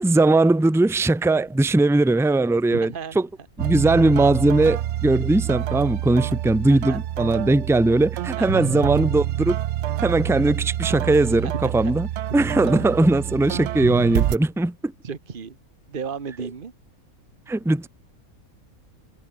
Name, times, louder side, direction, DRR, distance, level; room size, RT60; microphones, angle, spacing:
voice 1, 0.0-3.3 3.6-9.6 10.0-12.1 12.3-14.9 17.5-17.9, right 2 dB, ahead, 0.7 m, -19 dB
voice 2, 2.7-3.2 6.7-7.0 8.4-8.7 11.4-11.9 12.3-12.4 15.0-15.6 15.9-16.7, right 6 dB, 40° right, 1.5 m, -34 dB
sound 1, 3.6-14.4, right 12 dB, 65° right, 0.8 m, -27 dB
omnidirectional pair, 1.5 m